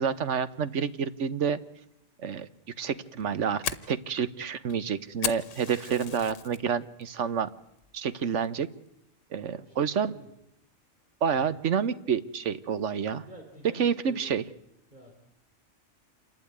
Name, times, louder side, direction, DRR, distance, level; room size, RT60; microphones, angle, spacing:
voice 1, 0.0-1.6 2.2-2.5 2.8-7.5 7.9-8.7 9.3-10.1 11.2-13.2 13.7-14.4, right 7 dB, 75° right, 14 dB, 1.3 m, -29 dB
Fire, 3.1-6.6 7.0-7.4 7.8-7.9 8.4-8.8, left 8 dB, 90° left, 1.3 m, -36 dB
voice 2, 9.5-10.3 11.5-11.6 13.1-14.3 14.9-15.2, right 1 dB, 40° right, 0 dB, 4.1 m, -51 dB
27.5 x 12.0 x 9.5 m, 0.85 s
omnidirectional pair, 1.3 m